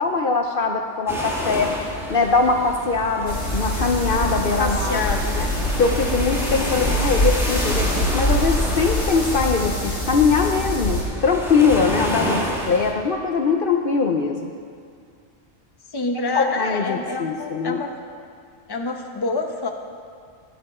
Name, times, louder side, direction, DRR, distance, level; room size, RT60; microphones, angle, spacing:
voice 1, 0.0-1.7 2.1-5.0 5.4-5.5 5.8-14.5 16.3-17.8, left 4 dB, 55° left, 3 dB, 0.8 m, -21 dB
breaking waves, 1.1-12.9, equal, ahead, 1.8 m, -30 dB
sound 1, 3.3-11.0, left 1 dB, 70° left, 3.2 m, -24 dB
voice 2, 4.6-5.4 15.9-17.9 18.7-19.7, left 3 dB, 25° left, 3 dB, 0.8 m, -27 dB
15.0 x 11.0 x 4.3 m, 2.2 s
omnidirectional pair, 1.2 m